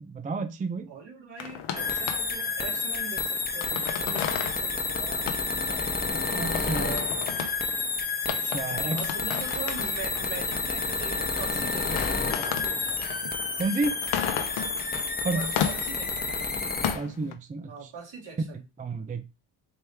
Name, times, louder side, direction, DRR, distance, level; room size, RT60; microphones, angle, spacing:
voice 1, 0.0-0.9 6.3-7.0 8.4-9.0 13.6-13.9 15.2-15.4 16.9-17.9 18.8-19.2, right 3 dB, 20° right, 0.4 m, -31 dB
voice 2, 0.9-5.9 6.7-7.1 8.5-13.1 15.3-16.4 17.7-18.6, right 6 dB, 65° right, 2.3 m, -42 dB
sound 1, 1.4-2.5 3.2-4.7 4.9-5.0 5.3-5.4 6.2-6.3 6.5-7.6 8.3-10.7 11.2-11.5 11.8-15.1 15.4-16.2 16.5-17.3, left 9 dB, 80° left, 0.8 m, -33 dB
sound 2, 1.8-16.9, left 4 dB, 20° left, 0.9 m, -30 dB
4.4 x 3.2 x 3.4 m
cardioid pair, 85°, 46 cm